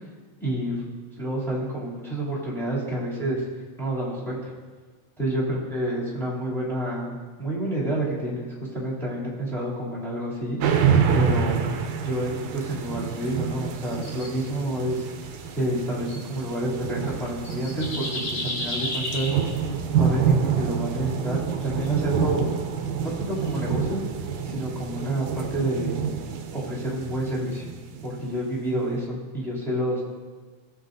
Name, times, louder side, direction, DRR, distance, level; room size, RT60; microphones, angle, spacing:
voice 1, 0.4-0.8 1.2-3.5 3.8-4.5 5.2-10.8 11.1-11.6 12.0-15.1 15.5-19.4 20.0-22.5 23.0-24.0 24.4-26.0 26.5-27.6 28.0-30.0, right 1 dB, ahead, -7 dB, 2.2 m, -29 dB
sound 1, 10.6-28.4, right 7 dB, 85° right, 2.1 m, -27 dB
sound 2, 13.0-13.2 13.8-14.3 15.2-15.5 16.1-16.2 17.0-17.1 17.4-19.4 21.6-21.9 23.4-23.6, left 1 dB, 80° left, 3.7 m, -32 dB
16.5 x 7.6 x 2.6 m, 1.4 s
omnidirectional pair, 3.4 m